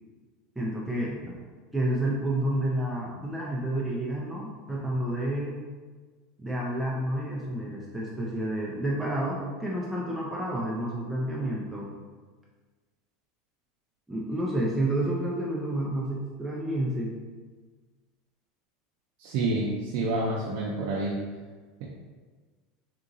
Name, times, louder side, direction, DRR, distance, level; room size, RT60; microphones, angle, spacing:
voice 1, 0.6-1.4 1.7-5.6 6.4-11.9 14.1-17.2, right 1 dB, 5° right, -5 dB, 0.5 m, -30 dB
voice 2, 19.2-21.2, right 2 dB, 65° right, -4 dB, 0.5 m, -28 dB
3.6 x 2.9 x 2.6 m, 1.4 s
supercardioid pair, 125°, 0 cm